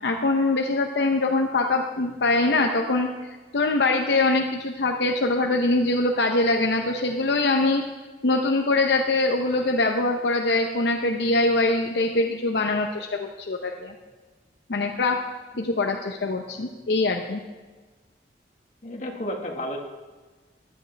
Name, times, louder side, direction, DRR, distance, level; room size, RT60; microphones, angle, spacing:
voice 1, 0.0-3.1 3.5-7.8 8.2-14.0 14.7-15.2 15.6-17.4, left 2 dB, 75° left, 2 dB, 0.8 m, -23 dB
voice 2, 18.8-19.8, equal, 45° left, 1 dB, 1.7 m, -31 dB
15.0 x 11.0 x 3.4 m, 1.3 s
head